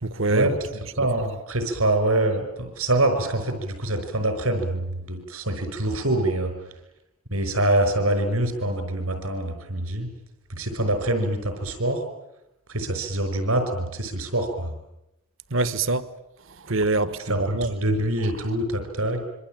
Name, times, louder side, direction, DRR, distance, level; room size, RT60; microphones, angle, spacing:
voice 1, 0.0-0.5 15.5-16.1 16.6-17.8, right 2 dB, 65° right, 1.3 m, -24 dB
voice 2, 1.0-6.5 7.3-10.1 10.5-12.0 12.7-14.7 17.3-19.2, right 1 dB, 85° right, 5.6 m, -25 dB
26.0 x 24.5 x 9.1 m
head